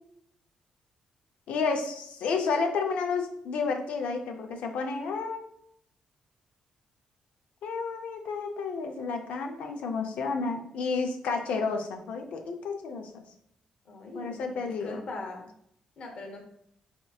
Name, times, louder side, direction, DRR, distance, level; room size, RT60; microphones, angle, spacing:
voice 1, 1.5-5.5 7.6-13.2 14.1-15.0, left 4 dB, 85° left, 4 dB, 0.5 m, -31 dB
voice 2, 13.8-15.5 16.0-16.4, left 2 dB, 50° left, 2 dB, 0.8 m, -40 dB
4.3 x 2.9 x 2.3 m, 0.71 s
wide cardioid pair, 160°, 2 cm